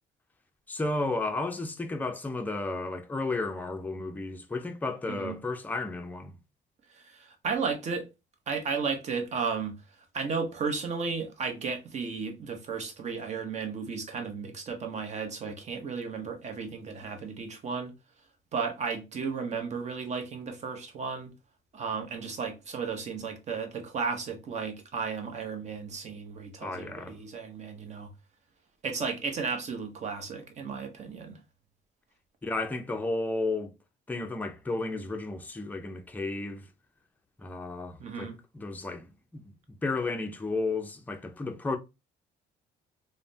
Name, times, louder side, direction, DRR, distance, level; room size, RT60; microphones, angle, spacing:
voice 1, 0.7-6.4 26.6-27.2 32.4-33.7 34.1-36.7 37.4-41.8, left 2 dB, 10° left, 0.4 m, -33 dB
voice 2, 6.9-8.1 8.5-9.8 10.1-17.9 18.5-21.3 21.7-28.1 28.8-31.4 38.0-38.4, right 5 dB, 40° right, 0.8 m, -34 dB
3.2 x 2.1 x 2.6 m
cardioid pair, 110°, 17 cm